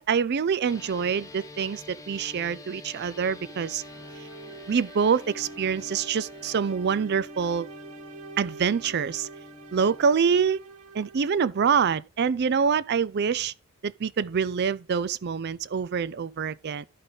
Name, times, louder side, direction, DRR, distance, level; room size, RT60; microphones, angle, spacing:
voice 1, 0.0-3.8 4.7-7.7 8.4-9.3 9.7-10.6 10.9-13.5 13.8-16.9, right 6 dB, 45° right, 0.4 m, -25 dB
sound 1, 0.7-10.1, left 3 dB, 15° left, 0.9 m, -46 dB
sound 2, 3.1-11.5, right 4 dB, 75° right, 0.9 m, -46 dB
12.0 x 5.3 x 3.9 m
head